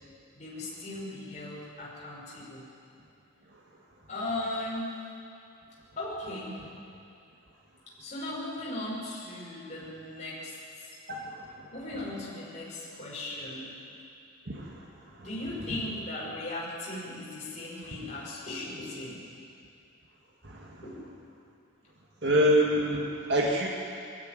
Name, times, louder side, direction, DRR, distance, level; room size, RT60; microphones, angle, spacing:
voice 1, 0.4-2.7 4.1-5.0 6.0-6.6 8.0-11.0 11.7-13.8 15.2-19.2 20.8-21.1, left 1 dB, 35° left, -6 dB, 5.7 m, -37 dB
voice 2, 11.1-11.4 14.5-14.8 20.4-20.8 22.2-23.7, equal, 55° right, -2 dB, 1.9 m, -26 dB
20.0 x 14.0 x 9.3 m, 2.5 s
head